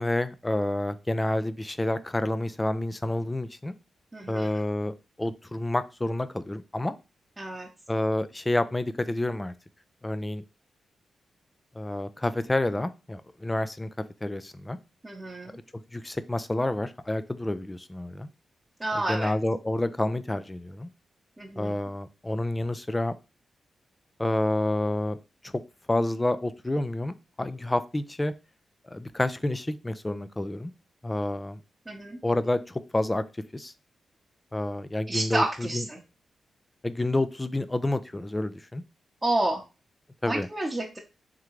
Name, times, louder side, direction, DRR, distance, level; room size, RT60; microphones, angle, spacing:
voice 1, 0.0-3.7 4.3-6.9 7.9-9.5 10.0-10.4 11.8-13.9 14.2-14.8 15.9-18.3 19.1-20.9 21.6-23.1 24.2-25.2 25.9-28.3 28.9-30.7 31.0-31.6 32.2-33.2 33.5-33.7 34.5-35.4 35.7-35.8 36.8-38.8 40.2-40.5, left 1 dB, 20° left, 13 dB, 0.5 m, -29 dB
voice 2, 4.1-4.6 7.4-7.7 15.0-15.6 18.8-19.3 21.4-21.8 31.9-32.2 35.1-36.0 39.2-39.6 40.3-41.0, right 1 dB, 20° right, -3 dB, 0.9 m, -30 dB
3.7 x 3.2 x 3.1 m, 0.29 s
cardioid pair, 55°, 0 cm